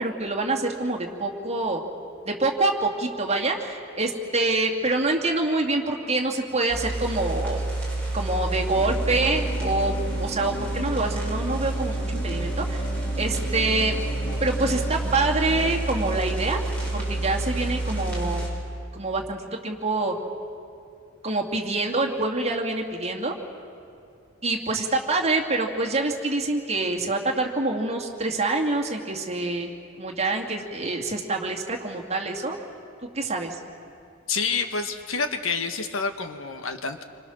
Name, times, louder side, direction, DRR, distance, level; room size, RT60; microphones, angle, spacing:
voice 1, 0.0-1.8 2.3-7.6 8.1-12.8 13.2-14.0 14.4-16.6 16.9-18.5 18.9-20.1 21.2-23.3 24.4-32.6 33.1-33.6, right 2 dB, 30° right, 0 dB, 2.4 m, -26 dB
sound 1, 6.7-18.5, right 2 dB, 5° left, 5.8 m, -29 dB
sound 2, 8.7-18.3, equal, 50° left, 2.4 m, -38 dB
voice 2, 34.3-37.0, left 5 dB, 80° left, 7 dB, 1.5 m, -28 dB
27.5 x 25.5 x 6.5 m, 2.5 s
head